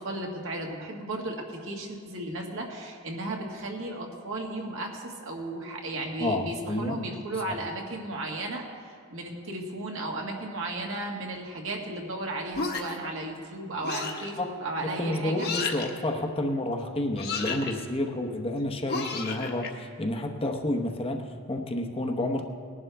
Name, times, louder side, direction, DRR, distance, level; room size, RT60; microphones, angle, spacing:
voice 1, 0.0-15.5, right 2 dB, 60° right, 0 dB, 1.8 m, -35 dB
voice 2, 6.2-7.0 7.5-7.6 14.4-14.5 14.8-22.4, left 1 dB, 25° left, 4 dB, 0.9 m, -30 dB
sound 1, 12.5-13.1 13.8-14.3 15.4-15.9 17.1-17.7 18.9-19.7, left 4 dB, 45° left, 1.3 m, -32 dB
19.5 x 11.0 x 3.5 m, 2.3 s
head